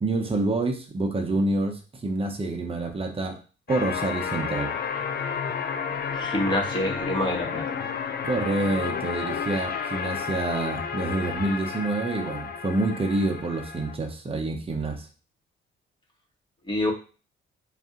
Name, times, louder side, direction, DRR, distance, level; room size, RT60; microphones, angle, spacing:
voice 1, 0.0-3.4 3.7-4.7 8.2-15.1, right 2 dB, 30° right, 3 dB, 0.8 m, -27 dB
sound 1, 3.7-14.0, left 6 dB, 55° left, 0.5 m, -31 dB
voice 2, 6.1-7.8 16.7-16.9, left 1 dB, 25° left, 0 dB, 1.3 m, -27 dB
4.1 x 2.7 x 3.7 m, 0.36 s
cardioid pair, 90°, 20 cm